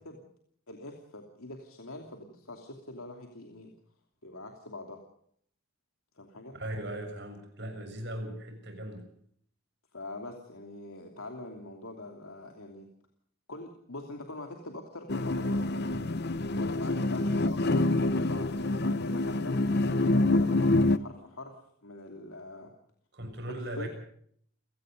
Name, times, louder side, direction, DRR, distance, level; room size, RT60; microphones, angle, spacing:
voice 1, 0.7-3.7 4.2-5.0 6.2-6.5 9.9-12.9 13.5-15.9 16.5-19.5 20.3-21.6 21.8-22.7 23.8-23.9, left 2 dB, 80° left, 3 dB, 2.9 m, -44 dB
voice 2, 6.5-9.1 16.9-17.0 23.1-23.9, right 1 dB, 50° right, 5 dB, 6.9 m, -38 dB
sound 1, 15.1-21.0, left 2 dB, 50° left, 0.8 m, -26 dB
30.0 x 17.5 x 5.2 m, 0.64 s
head